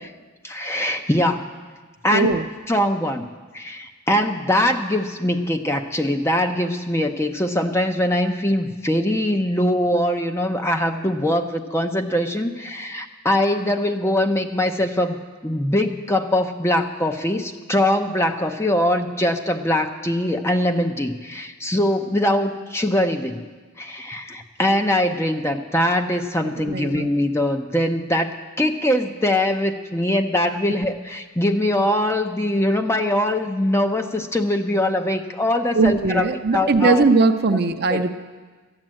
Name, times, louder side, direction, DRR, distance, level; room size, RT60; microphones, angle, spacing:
voice 1, 0.4-1.4 2.0-2.4 2.7-3.3 3.5-15.2 15.4-23.5 23.8-37.0 37.9-38.0, left 1 dB, 10° left, 5 dB, 0.6 m, -22 dB
voice 2, 2.1-2.4 26.6-27.1 35.7-38.2, right 4 dB, 50° right, 8 dB, 0.5 m, -19 dB
13.5 x 9.0 x 7.5 m, 1.4 s
head